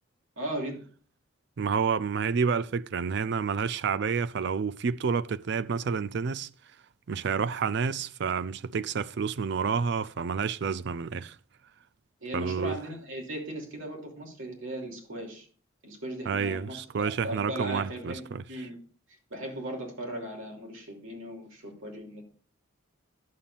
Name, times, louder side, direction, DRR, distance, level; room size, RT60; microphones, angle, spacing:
voice 1, 0.4-0.9 12.2-15.5 15.8-18.8 19.3-22.2, right 1 dB, 75° right, 2.9 m, -38 dB
voice 2, 1.6-6.5 7.1-11.4 12.3-12.8 16.3-18.4, right 6 dB, 55° right, 0.4 m, -29 dB
11.5 x 7.1 x 2.5 m
head